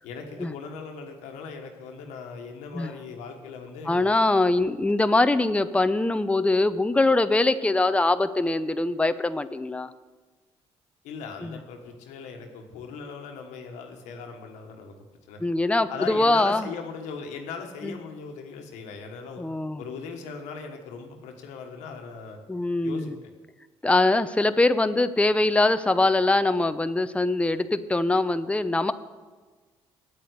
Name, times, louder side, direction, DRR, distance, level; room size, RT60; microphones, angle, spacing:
voice 1, 0.0-4.1 11.0-14.9 15.3-15.4 15.9-19.4 19.8-22.4 22.8-23.3, left 5 dB, 90° left, 4 dB, 1.3 m, -39 dB
voice 2, 3.9-9.9 11.4-11.6 15.4-16.7 17.8-18.0 19.4-19.8 22.5-23.1 23.8-28.9, left 2 dB, 10° left, 11 dB, 0.6 m, -23 dB
8.7 x 8.2 x 8.0 m, 1.3 s
supercardioid pair, 65°, 12 cm